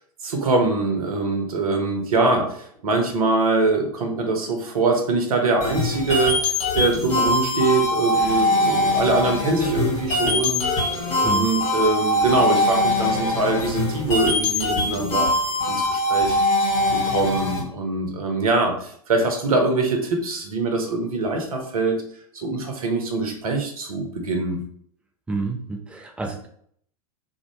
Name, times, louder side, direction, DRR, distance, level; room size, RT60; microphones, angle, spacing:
voice 1, 0.2-6.4 6.7-10.6 11.2-15.3 15.7-16.4 17.0-22.0 22.3-24.6, right 3 dB, 65° right, 3 dB, 0.8 m, -23 dB
sound 1, 5.6-17.6, left 1 dB, 35° left, 1.2 m, -22 dB
voice 2, 25.3-26.5, right 3 dB, 5° right, 1 dB, 0.4 m, -29 dB
2.6 x 2.1 x 3.1 m, 0.62 s
figure-of-eight pair, 95°, 20 cm